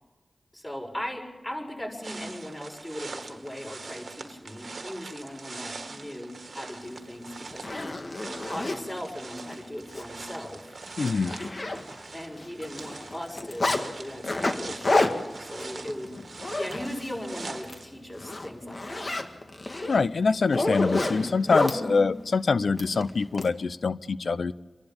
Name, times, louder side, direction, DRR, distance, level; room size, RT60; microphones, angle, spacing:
voice 1, 0.5-10.7 12.1-15.1 15.4-16.1 16.6-19.1 21.7-22.0, equal, 20° left, 0 dB, 6.8 m, -38 dB
sound 1, 2.0-17.9, right 3 dB, 80° right, 1.4 m, -43 dB
Zipper (clothing), 7.0-7.1 7.5-8.8 9.4-9.5 9.9-10.0 10.4-10.5 10.8-12.2 12.4-13.8 14.2-17.2 17.5-17.8 18.2-21.8 22.8-23.5, left 2 dB, 55° left, 1.8 m, -29 dB
voice 2, 11.0-11.4 19.9-24.5, left 4 dB, 85° left, 16 dB, 0.6 m, -25 dB
27.5 x 11.5 x 8.9 m, 1.2 s
cardioid pair, 50°, 0 cm